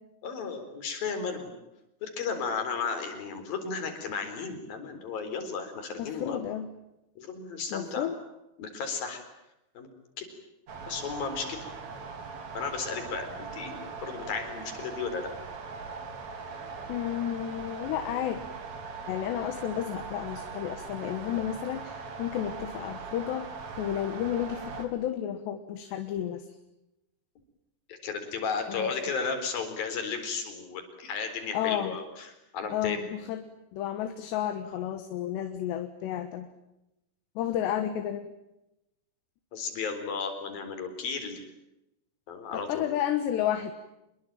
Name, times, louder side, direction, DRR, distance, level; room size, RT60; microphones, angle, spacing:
voice 1, 0.2-1.5 2.0-6.4 7.2-8.1 8.6-9.2 9.8-9.9 10.2-10.3 10.9-11.6 12.5-15.3 27.9-33.1 39.5-41.4 42.3-42.8, left 5 dB, 55° left, 5 dB, 5.9 m, -34 dB
voice 2, 6.0-6.7 7.7-8.2 16.9-18.4 19.1-23.5 23.8-26.5 28.7-28.9 31.5-32.0 32.6-33.4 33.7-36.5 37.4-38.3 42.5-43.7, left 11 dB, 75° left, 8 dB, 3.5 m, -32 dB
sound 1, 10.7-24.9, right 4 dB, 45° right, 3.5 m, -40 dB
26.5 x 22.0 x 9.1 m, 0.90 s
omnidirectional pair, 5.0 m